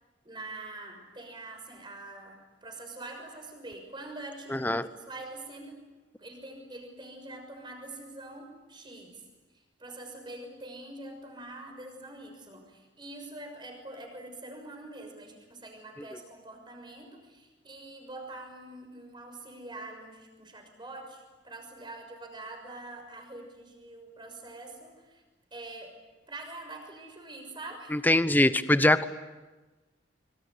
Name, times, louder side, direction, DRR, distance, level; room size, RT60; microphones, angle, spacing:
voice 1, 0.2-5.9 6.2-9.2 9.5-25.2 25.5-26.0 26.3-28.1, right 2 dB, 25° right, 4 dB, 6.3 m, -44 dB
voice 2, 4.5-4.9 27.9-29.1, left 1 dB, 10° left, 12 dB, 0.9 m, -23 dB
25.0 x 24.5 x 9.5 m, 1.2 s
head